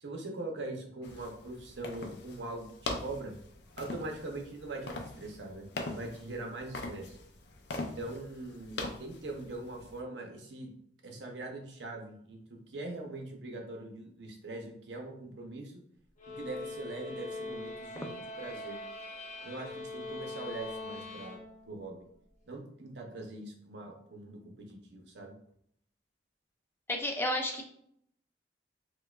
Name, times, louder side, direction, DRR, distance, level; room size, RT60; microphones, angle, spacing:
voice 1, 0.0-2.7 3.0-3.3 3.8-7.2 7.9-10.7 11.0-15.8 16.4-18.8 19.4-21.4 21.7-22.0 22.5-25.3, right 2 dB, 75° right, 2 dB, 0.7 m, -42 dB
sound 1, 1.0-10.0, left 2 dB, 65° left, 0.5 m, -42 dB
sound 2, 16.2-21.9, left 2 dB, 40° left, 0.8 m, -42 dB
voice 2, 26.9-27.6, left 1 dB, 15° left, 2 dB, 0.4 m, -31 dB
4.6 x 2.2 x 2.3 m, 0.68 s
head